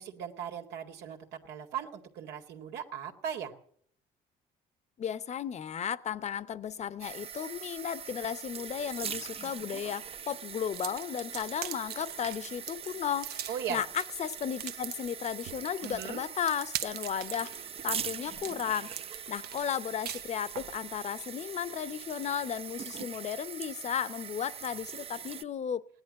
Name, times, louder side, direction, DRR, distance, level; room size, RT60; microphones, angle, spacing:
voice 1, 0.0-3.5 13.5-13.8 15.8-16.2, right 8 dB, 90° right, 2.1 m, -38 dB
voice 2, 5.0-25.9, left 8 dB, 40° left, 0.9 m, -35 dB
sound 1, 7.0-25.4, right 7 dB, 35° right, 0.6 m, -42 dB
sound 2, 10.7-20.8, right 11 dB, 70° right, 0.9 m, -41 dB
17.0 x 11.0 x 7.5 m
cardioid pair, 110°, 17 cm